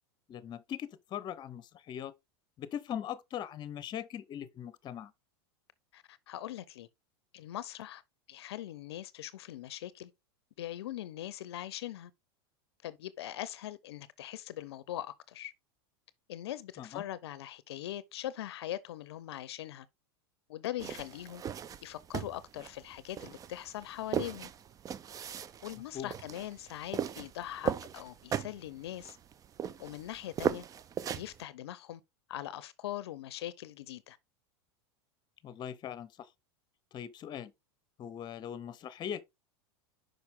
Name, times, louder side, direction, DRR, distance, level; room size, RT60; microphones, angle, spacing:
voice 1, 0.3-2.1 2.6-5.1 16.8-17.1 25.9-26.1 35.4-36.3 36.9-37.5 38.0-39.2, left 9 dB, 35° left, 0.8 m, -40 dB
voice 2, 5.9-6.9 7.3-8.0 8.3-10.1 10.6-12.1 12.8-15.5 16.3-19.9 20.5-21.4 21.8-24.5 25.6-29.2 29.8-30.6 31.1-32.0 32.3-34.2, left 13 dB, 80° left, 0.6 m, -41 dB
sound 1, 20.8-31.4, right 8 dB, 25° right, 0.5 m, -38 dB
5.9 x 5.1 x 3.6 m
hypercardioid pair, 110°, 13 cm